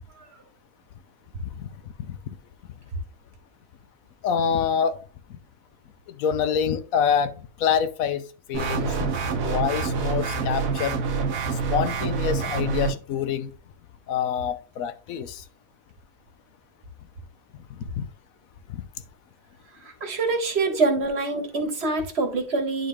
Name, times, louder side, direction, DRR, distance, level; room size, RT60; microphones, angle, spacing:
voice 1, 4.2-5.0 6.2-7.3 7.6-8.2 8.5-8.9 9.4-11.0 11.7-13.5 14.1-15.4 18.0-18.1, left 7 dB, 70° left, 1.1 m, -25 dB
sound 1, 8.5-12.9, right 5 dB, 65° right, 1.3 m, -26 dB
voice 2, 20.0-22.9, right 3 dB, 45° right, 1.5 m, -25 dB
10.0 x 4.0 x 3.3 m
omnidirectional pair, 1.6 m